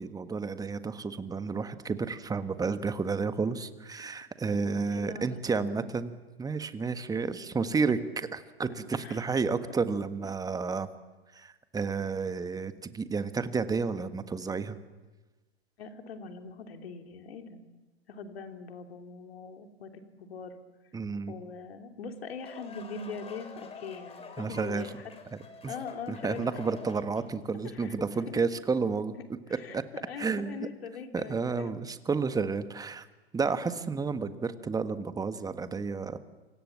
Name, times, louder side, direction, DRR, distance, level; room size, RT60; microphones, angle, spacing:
voice 1, 0.0-8.0 8.3-10.9 11.3-14.8 20.9-21.3 24.4-24.9 25.6-25.7 26.1-29.1 29.7-29.8 30.2-30.6 31.1-33.1 33.3-36.2, right 4 dB, 10° right, 11 dB, 1.5 m, -31 dB
voice 2, 4.5-5.9 9.0-9.2 10.2-10.3 15.8-17.6 18.1-20.6 21.3-25.1 25.7-26.5 27.6-28.0 28.3-28.4 29.1-31.7, left 5 dB, 65° left, 5 dB, 3.1 m, -42 dB
sound 1, 22.1-27.5, left 4 dB, 20° left, 3.7 m, -47 dB
28.0 x 25.5 x 7.4 m, 1.2 s
figure-of-eight pair, 100°, 32 cm